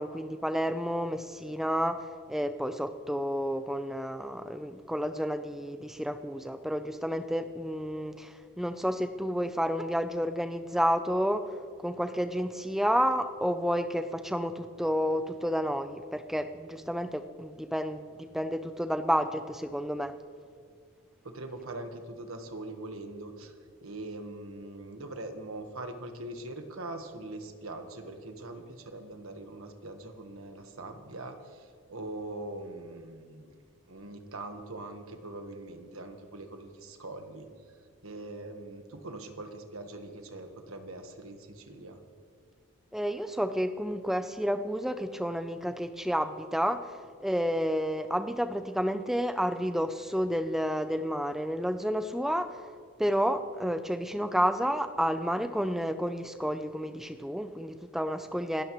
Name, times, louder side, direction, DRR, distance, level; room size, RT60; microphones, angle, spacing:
voice 1, 0.0-11.5 11.8-20.1 42.9-52.6 53.0-58.6, equal, ahead, 9 dB, 0.5 m, -30 dB
voice 2, 21.2-23.5 23.8-33.5 33.9-37.5 38.0-42.0, right 2 dB, 75° right, 6 dB, 1.4 m, -42 dB
25.5 x 12.5 x 3.1 m, 2.1 s
head